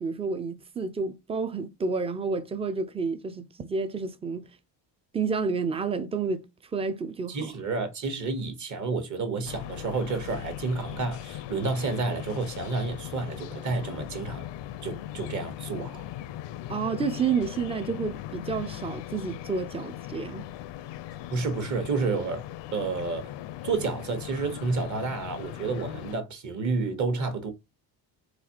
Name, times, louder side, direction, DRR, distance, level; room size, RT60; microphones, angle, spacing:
voice 1, 0.0-4.5 5.1-7.5 16.7-20.5, right 5 dB, 15° right, 0.3 m, -30 dB
voice 2, 7.3-14.5 14.8-16.1 21.3-22.5 22.7-23.3 23.6-27.5, right 4 dB, 40° right, 1.1 m, -30 dB
sound 1, 9.4-26.1, left 13 dB, 75° left, 0.5 m, -39 dB
4.1 x 2.5 x 2.8 m
cardioid pair, 140°, 43 cm